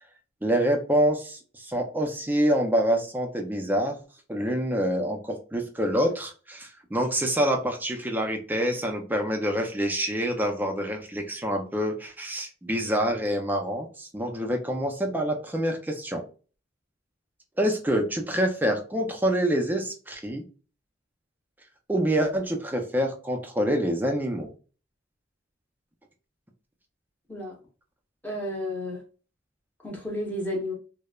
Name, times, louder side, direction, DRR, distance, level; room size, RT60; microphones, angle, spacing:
voice 1, 0.4-4.0 4.3-16.2 17.6-20.4 21.9-24.5, equal, 10° right, 0.4 m, -26 dB
voice 2, 28.2-29.0 29.8-30.7, left 1 dB, 10° left, 0.8 m, -32 dB
2.9 x 2.0 x 2.3 m
head